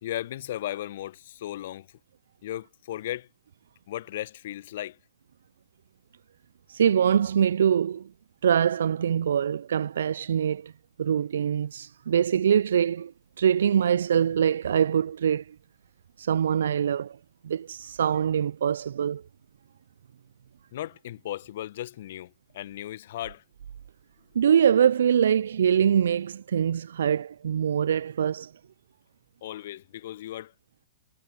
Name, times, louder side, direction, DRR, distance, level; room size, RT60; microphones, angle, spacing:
voice 1, 0.0-1.9 2.4-3.3 3.9-5.0 20.7-23.4 29.4-30.5, left 13 dB, 55° left, 1.3 m, -36 dB
voice 2, 6.7-8.1 8.4-10.7 11.0-13.1 13.4-15.6 16.2-17.2 17.4-19.2 24.3-28.5, right 8 dB, 65° right, 0.7 m, -23 dB
figure-of-eight pair, 100°, 0 cm